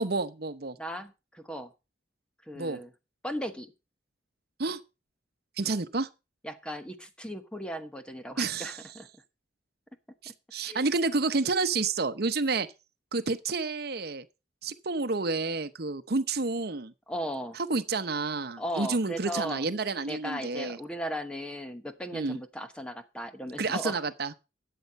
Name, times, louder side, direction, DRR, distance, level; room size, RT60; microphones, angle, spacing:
voice 1, 0.0-0.8 2.5-2.8 4.6-4.8 5.6-6.1 8.4-8.8 10.2-12.7 13.1-14.2 14.6-16.9 17.5-20.8 22.1-22.4 23.6-24.3, right 3 dB, 60° right, 0.9 m, -30 dB
voice 2, 0.8-1.7 2.5-2.9 3.2-3.7 6.4-9.1 10.6-10.9 17.1-17.6 18.6-19.6 20.1-24.0, equal, 5° left, 1.0 m, -37 dB
13.0 x 7.8 x 5.4 m
head